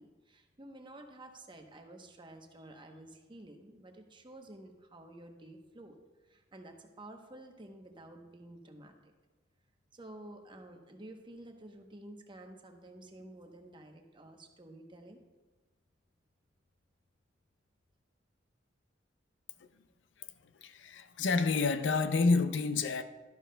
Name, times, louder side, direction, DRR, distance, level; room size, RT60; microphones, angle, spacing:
voice 1, 0.0-5.9 6.2-9.1 9.9-15.2, right 1 dB, 25° right, 0.9 m, -51 dB
voice 2, 20.6-23.0, left 4 dB, 75° left, 0.5 m, -28 dB
12.0 x 11.5 x 2.2 m
head